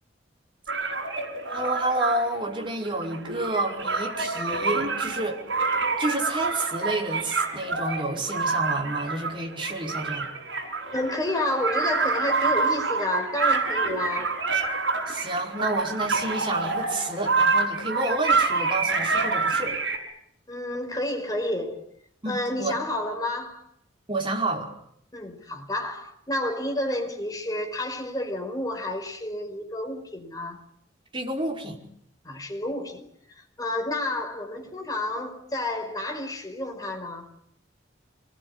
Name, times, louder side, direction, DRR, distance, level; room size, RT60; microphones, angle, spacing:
sound 1, 0.7-20.0, right 4 dB, 80° right, 6.6 m, -27 dB
voice 1, 1.5-5.4 6.0-10.3 15.1-19.7 22.2-22.8 24.1-24.7 31.1-31.8, right 2 dB, 25° right, 5.2 m, -29 dB
voice 2, 10.9-14.4 20.5-21.9 22.3-23.7 25.1-30.6 32.2-37.3, left 1 dB, 20° left, 5.2 m, -30 dB
26.0 x 21.0 x 9.9 m
head